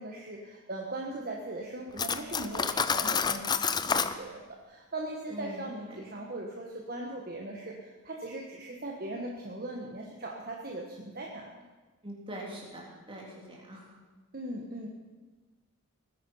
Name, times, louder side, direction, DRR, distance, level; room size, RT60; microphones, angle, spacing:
voice 1, 0.0-11.6 14.3-14.9, right 1 dB, 40° right, 0 dB, 1.3 m, -39 dB
Cutlery silverware, 2.0-4.2, left 6 dB, 20° left, 0.4 m, -28 dB
voice 2, 5.3-5.7 12.0-13.9, right 1 dB, 25° right, -3 dB, 3.4 m, -43 dB
19.0 x 10.0 x 5.6 m, 1.3 s
head